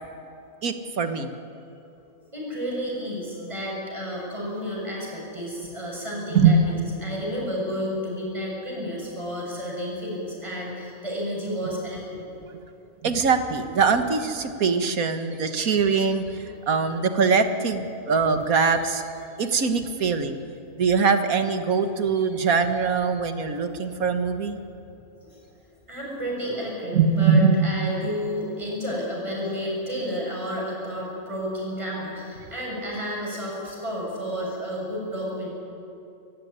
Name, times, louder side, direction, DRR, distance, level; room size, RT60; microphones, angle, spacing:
voice 1, 0.6-1.3 6.3-6.6 13.0-19.1 19.4-20.4 20.8-24.6 26.9-27.9, right 5 dB, 80° right, 8 dB, 1.8 m, -22 dB
voice 2, 2.3-6.8 7.0-12.2 23.7-23.8 25.2-25.3 25.9-35.5, equal, 20° right, -3 dB, 7.1 m, -31 dB
25.0 x 15.5 x 9.6 m, 2.7 s
omnidirectional pair, 1.5 m